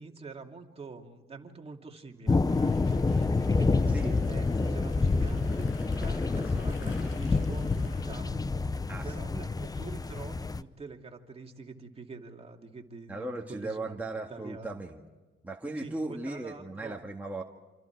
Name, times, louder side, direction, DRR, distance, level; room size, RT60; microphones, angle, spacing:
voice 1, 0.0-3.3 3.6-8.7 9.0-14.7 15.8-17.0, right 4 dB, 30° right, 2 dB, 2.5 m, -46 dB
sound 1, 2.3-10.6, left 3 dB, 20° left, 0.7 m, -28 dB
sound 2, 2.5-8.2, left 3 dB, 90° left, 5.5 m, -52 dB
voice 2, 8.9-9.5 13.1-15.0 15.4-17.4, right 2 dB, 10° right, -1 dB, 1.8 m, -37 dB
28.5 x 27.5 x 4.7 m, 1.2 s
cardioid pair, 90°, 20 cm